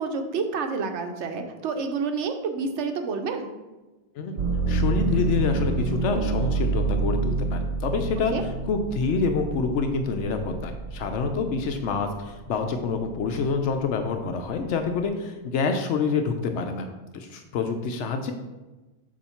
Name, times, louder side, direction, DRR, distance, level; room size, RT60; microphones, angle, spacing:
voice 1, 0.0-3.5 8.3-8.4, right 4 dB, 85° right, 6 dB, 1.0 m, -29 dB
voice 2, 4.2-8.3 8.7-16.9 17.1-18.3, left 4 dB, 90° left, 5 dB, 0.9 m, -27 dB
sound 1, 4.4-12.2 12.7-13.5, right 3 dB, 55° right, 0.6 m, -28 dB
6.9 x 2.8 x 5.6 m, 1.1 s
omnidirectional pair, 1.2 m